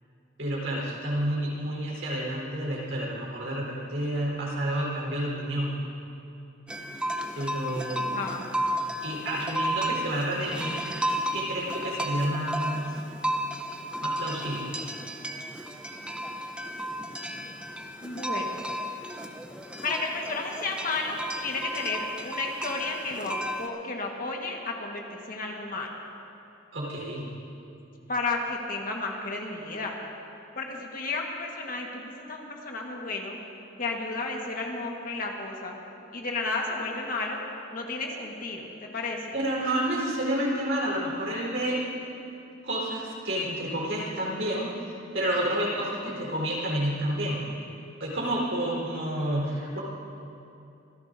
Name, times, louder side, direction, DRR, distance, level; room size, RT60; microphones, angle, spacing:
voice 1, 0.4-5.7 7.4-8.2 9.0-10.8 11.3-12.9 14.0-14.7 26.7-27.3 39.3-41.8 42.6-47.4 48.0-49.8, right 1 dB, 70° right, -3 dB, 4.2 m, -30 dB
sound 1, 6.7-23.7, equal, 5° right, 0.6 m, -33 dB
voice 2, 7.9-8.4 18.0-18.6 19.8-25.9 28.1-29.9 30.5-33.4 33.8-35.7 36.1-37.4 37.7-39.2, left 3 dB, 45° left, 0 dB, 1.5 m, -32 dB
26.0 x 16.5 x 2.7 m, 2.8 s
head